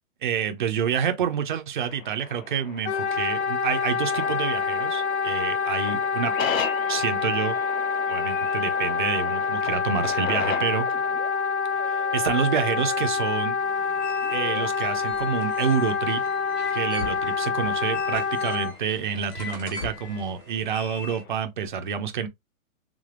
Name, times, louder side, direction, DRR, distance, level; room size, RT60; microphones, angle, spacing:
voice 1, 0.2-6.3 6.9-7.6 8.1-10.9 11.8-13.6 14.3-16.2 16.7-22.3, right 7 dB, 40° right, 0.4 m, -28 dB
sound 1, 1.8-21.4, left 7 dB, 75° left, 0.9 m, -39 dB
Wind instrument woodwind instrument, 2.8-18.7, left 5 dB, 55° left, 0.5 m, -26 dB
sound 2, 13.6-21.2, left 4 dB, 25° left, 1.2 m, -40 dB
3.6 x 3.3 x 2.4 m
hypercardioid pair, 170°, 41 cm